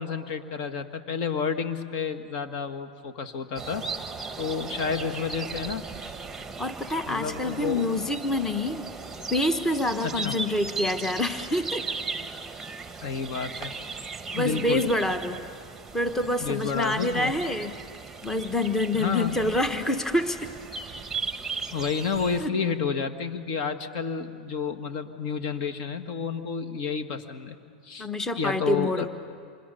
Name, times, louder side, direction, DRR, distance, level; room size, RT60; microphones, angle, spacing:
voice 1, 0.0-3.9 4.4-5.8 7.1-7.9 10.0-10.4 13.0-13.7 14.3-14.9 16.4-17.3 18.9-19.4 21.7-27.6 27.8-28.1 28.4-29.1, left 6 dB, 55° left, 7 dB, 1.8 m, -30 dB
sound 1, 3.6-22.5, right 4 dB, 5° right, 1.4 m, -37 dB
voice 2, 6.6-8.9 9.3-11.9 14.3-15.4 15.9-17.7 18.2-20.5 22.4-22.5 28.0-29.1, left 1 dB, 10° left, 8 dB, 1.2 m, -27 dB
27.0 x 25.5 x 6.9 m, 2.1 s
hypercardioid pair, 120°, 5 cm